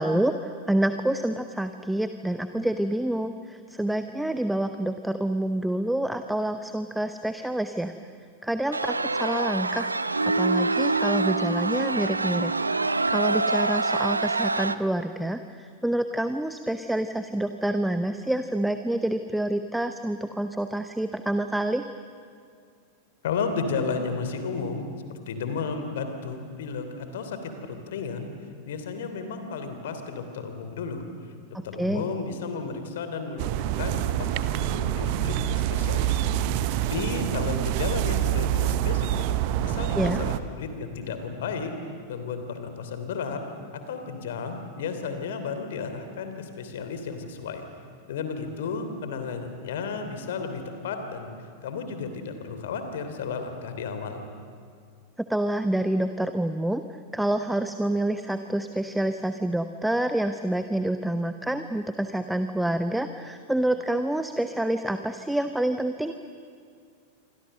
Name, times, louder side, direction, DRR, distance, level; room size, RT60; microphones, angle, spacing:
voice 1, 0.0-7.9 8.4-9.9 10.4-12.5 13.1-21.8 31.8-32.0 40.0-40.2 55.3-56.8 57.1-66.1, right 1 dB, 5° right, 9 dB, 0.9 m, -27 dB
sound 1, 8.7-14.8, right 3 dB, 80° right, 0.7 m, -25 dB
voice 2, 23.2-24.9 25.3-28.3 28.7-31.0 31.6-34.0 34.3-36.2 36.9-39.2 39.6-41.7 42.1-43.4 43.9-47.6 48.1-51.3 51.6-54.2, left 5 dB, 60° left, 7 dB, 3.1 m, -33 dB
sound 2, 33.4-40.4, right 11 dB, 45° right, 1.0 m, -26 dB
28.0 x 25.0 x 6.7 m, 2.3 s
figure-of-eight pair, 90°, 0 cm